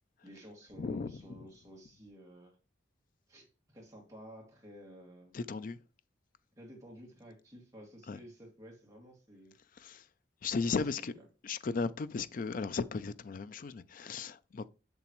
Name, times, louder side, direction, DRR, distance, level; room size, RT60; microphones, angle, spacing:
voice 1, 0.2-2.6 3.3-5.4 6.6-9.6 10.7-11.3, equal, 15° right, 2.2 m, -53 dB
voice 2, 0.8-1.1 5.3-5.8 8.1-8.2 9.8-10.0 10.4-11.1 11.4-14.7, left 4 dB, 45° left, 0.4 m, -35 dB
7.1 x 6.7 x 3.1 m
head